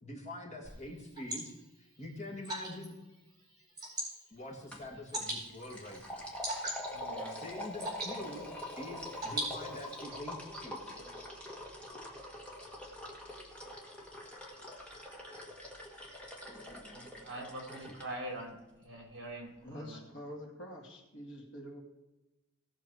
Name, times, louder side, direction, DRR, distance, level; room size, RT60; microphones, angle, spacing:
voice 1, 0.0-2.9 4.3-6.3 7.3-8.4 8.8-11.0, left 1 dB, 30° left, 0 dB, 1.7 m, -45 dB
Water / Drip, 0.6-10.0, right 1 dB, 20° right, 4.5 m, -43 dB
sound 1, 4.7-4.9 5.2-18.1, left 1 dB, 5° left, 1.6 m, -45 dB
voice 2, 6.9-7.4 10.9-11.4 16.9-20.0, right 1 dB, 55° right, 0 dB, 3.6 m, -45 dB
voice 3, 19.6-21.8, equal, 55° left, 0 dB, 2.3 m, -46 dB
18.0 x 6.4 x 4.7 m, 1.0 s
head